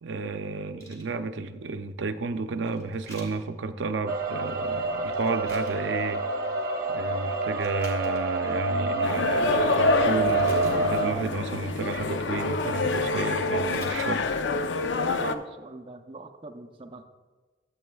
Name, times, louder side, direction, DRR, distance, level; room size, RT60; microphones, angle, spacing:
voice 1, 0.0-6.2 6.9-14.3, right 4 dB, 80° right, 9 dB, 0.5 m, -32 dB
sound 1, 0.8-1.1 2.6-3.4 5.1-5.8 6.3-6.7 7.5-8.2 10.3-11.1 13.2-13.3 13.6-14.2 14.8-14.9, equal, 20° left, 1.7 m, -48 dB
sound 2, 4.1-11.1, right 3 dB, 50° right, 0.9 m, -27 dB
sound 3, 9.0-15.3, left 3 dB, 80° left, 0.5 m, -27 dB
voice 2, 15.0-17.0, right 2 dB, 30° right, 4 dB, 0.5 m, -41 dB
12.5 x 8.4 x 2.3 m, 1.3 s
head